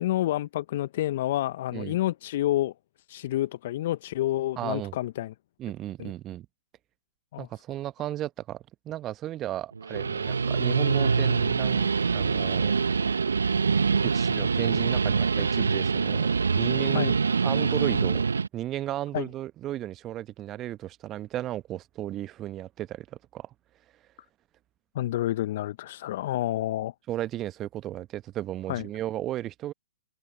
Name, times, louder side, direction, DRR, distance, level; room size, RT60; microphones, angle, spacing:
voice 1, 0.0-2.7 3.1-5.3 6.0-6.1 7.3-7.5 16.9-17.2 19.1-19.3 24.9-26.9 28.7-28.8, left 14 dB, 50° left, 0.8 m, -29 dB
voice 2, 4.6-4.9 5.6-6.5 7.4-12.7 14.0-17.2 17.4-18.2 18.5-23.1 23.3-23.5 27.1-29.7, right 13 dB, 25° right, 1.0 m, -34 dB
Guitar, 9.8-18.5, right 5 dB, 75° right, 1.1 m, -25 dB
figure-of-eight pair, 115°, 0 cm